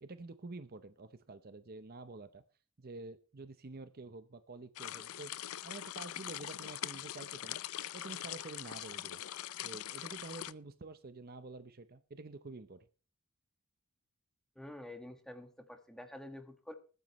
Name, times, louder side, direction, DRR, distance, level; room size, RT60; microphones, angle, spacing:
voice 1, 0.0-2.4 2.8-5.3 5.6-7.6 7.9-9.2 9.6-12.9, right 3 dB, 45° right, 11 dB, 0.7 m, -48 dB
sound 1, 4.8-10.5, left 12 dB, 70° left, 0.5 m, -42 dB
voice 2, 14.6-16.7, left 1 dB, 5° left, 6 dB, 1.6 m, -48 dB
21.0 x 9.4 x 3.1 m, 0.38 s
head